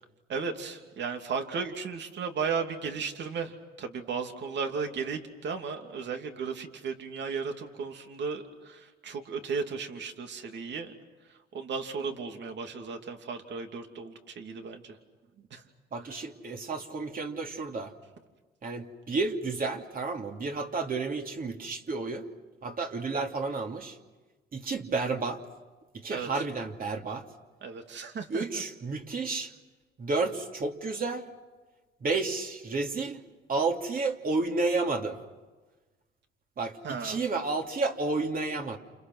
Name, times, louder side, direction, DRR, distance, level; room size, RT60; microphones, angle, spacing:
voice 1, 0.3-10.9 11.2-15.0 15.5-15.6 26.1-26.3 27.6-28.6 36.8-37.2, right 5 dB, 65° right, 5 dB, 2.9 m, -35 dB
voice 2, 15.9-17.9 18.6-22.3 22.6-24.0 24.5-25.4 25.9-27.2 28.3-29.5 30.0-31.3 32.0-33.2 33.5-35.2 36.6-38.8, right 3 dB, 45° right, 2 dB, 2.9 m, -31 dB
29.5 x 29.0 x 6.4 m, 1.2 s
cardioid pair, 90°, 20 cm